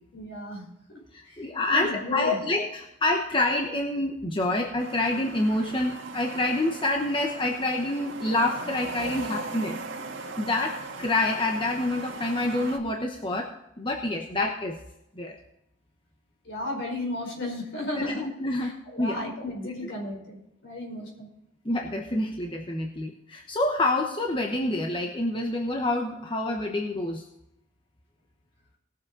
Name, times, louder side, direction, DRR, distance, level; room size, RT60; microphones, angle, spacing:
voice 1, 0.1-0.6 0.9-1.0 1.3-1.4 1.7-2.4 16.4-18.3 18.6-20.4 20.6-21.3, left 1 dB, 65° left, 0 dB, 4.8 m, -34 dB
voice 2, 1.1-9.8 10.2-14.8 15.2-15.3 17.9-19.2 19.6-19.9 21.6-27.2, left 2 dB, 25° left, 2 dB, 1.0 m, -27 dB
sound 1, 4.8-12.8, right 3 dB, 85° right, 1.8 m, -39 dB
19.0 x 7.4 x 3.9 m, 0.85 s
head